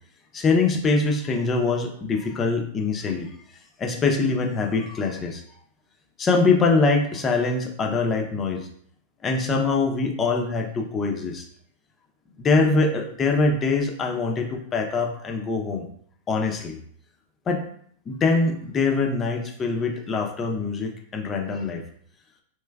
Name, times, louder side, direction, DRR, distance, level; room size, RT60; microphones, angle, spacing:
voice 1, 0.3-3.3 3.8-5.4 6.2-8.7 9.2-11.4 12.4-15.9 16.3-16.8 17.5-17.7 18.1-21.8, left 3 dB, 25° left, 2 dB, 0.6 m, -23 dB
3.4 x 3.0 x 2.2 m, 0.63 s
hypercardioid pair, 115°, 0 cm